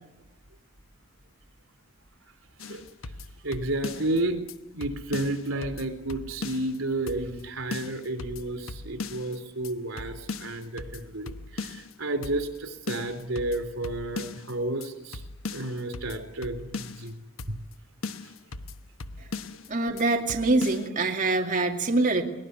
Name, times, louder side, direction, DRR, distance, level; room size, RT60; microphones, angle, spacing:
sound 1, 2.6-4.2 4.5-4.6 4.8-6.8 7.1-7.4 7.7-9.4 9.6-9.7 10.0-11.9 12.2-12.6 12.9-14.5 14.8-14.9 15.1-17.1 17.4-17.8 18.0-19.7 20.0-20.1 20.3-20.9, left 3 dB, 85° left, 1.1 m, -38 dB
voice 1, 2.6-3.1 3.4-4.4 4.7-15.2 15.5-17.6 18.2-18.3 19.5-19.6, right 2 dB, 85° right, 8 dB, 3.6 m, -32 dB
voice 2, 19.7-22.2, right 2 dB, 40° right, 1 dB, 2.4 m, -24 dB
22.5 x 19.0 x 9.7 m, 0.90 s
head